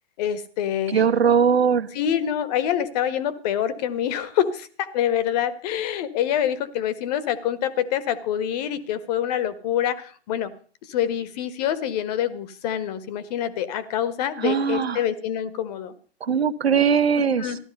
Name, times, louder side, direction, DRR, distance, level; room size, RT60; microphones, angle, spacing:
voice 1, 0.2-1.0 1.9-10.5 10.8-15.9 17.4-17.6, left 10 dB, 40° left, 15 dB, 1.5 m, -26 dB
voice 2, 0.9-1.9 14.4-15.0 16.2-17.5, right 7 dB, 70° right, 11 dB, 1.3 m, -20 dB
14.5 x 12.5 x 5.4 m, 0.41 s
figure-of-eight pair, 115°, 32 cm